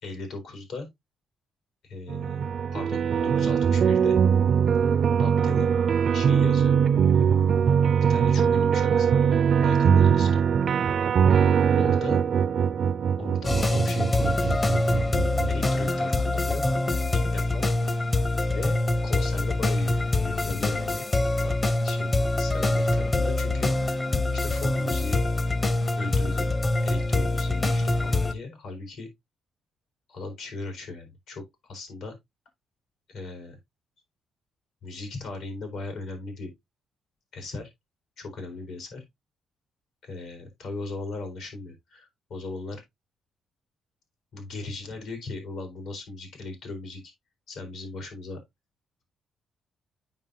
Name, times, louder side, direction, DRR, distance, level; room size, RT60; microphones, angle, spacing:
voice 1, 0.0-0.9 1.8-4.2 5.2-5.7 6.1-6.8 8.1-9.3 9.6-10.4 11.7-12.2 13.2-14.5 15.5-16.6 17.1-17.7 18.5-21.0 21.4-21.6 21.8-22.1 22.4-24.0 24.3-25.2 26.0-26.5 26.8-29.1 30.1-32.1 33.1-33.6 34.8-36.5 37.3-37.7 38.2-39.0 40.0-42.8 44.3-47.0 47.5-48.4, left 3 dB, 80° left, 4.3 m, -38 dB
sound 1, 2.1-15.5, right 7 dB, 55° right, 0.5 m, -22 dB
sound 2, 13.4-28.3, left 2 dB, 25° left, 0.8 m, -25 dB
9.0 x 5.4 x 2.7 m
cardioid pair, 90°, 0 cm